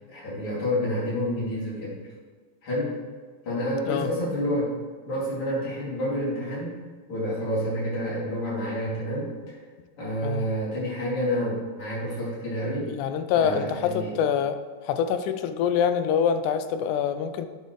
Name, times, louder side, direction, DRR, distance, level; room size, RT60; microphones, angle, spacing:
voice 1, 0.1-2.0 2.6-3.0 3.5-4.7 5.1-6.7 7.1-9.6 10.0-12.9 13.3-14.2, equal, 45° left, -7 dB, 3.5 m, -29 dB
voice 2, 12.9-14.6 14.9-17.5, left 8 dB, 90° left, 10 dB, 2.1 m, -25 dB
11.5 x 7.1 x 3.1 m, 1.5 s
omnidirectional pair, 3.5 m